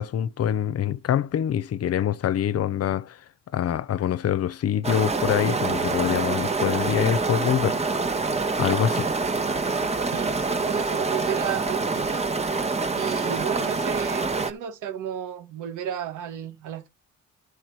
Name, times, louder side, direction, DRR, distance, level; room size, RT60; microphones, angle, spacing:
voice 1, 0.0-3.2 3.5-7.8 8.6-9.1, left 10 dB, 55° left, 0.6 m, -25 dB
sound 1, 4.8-14.5, right 3 dB, 20° right, 1.1 m, -26 dB
voice 2, 10.1-12.3 12.9-16.9, right 9 dB, 80° right, 1.3 m, -33 dB
12.0 x 4.8 x 4.6 m
cardioid pair, 90°, 30 cm